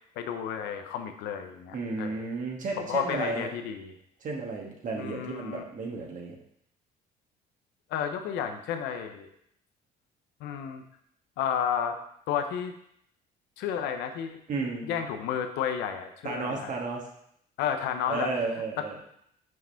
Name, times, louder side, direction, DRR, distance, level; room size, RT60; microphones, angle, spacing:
voice 1, 0.2-2.2 2.8-3.9 5.0-5.6 7.9-9.3 10.4-10.8 11.4-12.0 12.3-12.7 13.6-14.4 14.8-16.7 17.6-18.3 18.8-18.9, left 8 dB, 85° left, 6 dB, 0.7 m, -32 dB
voice 2, 1.7-3.5 4.2-6.3 14.5-15.0 16.2-17.1 18.1-19.0, right 3 dB, 50° right, 0 dB, 1.5 m, -33 dB
5.9 x 5.0 x 5.6 m, 0.72 s
cardioid pair, 110°, 17 cm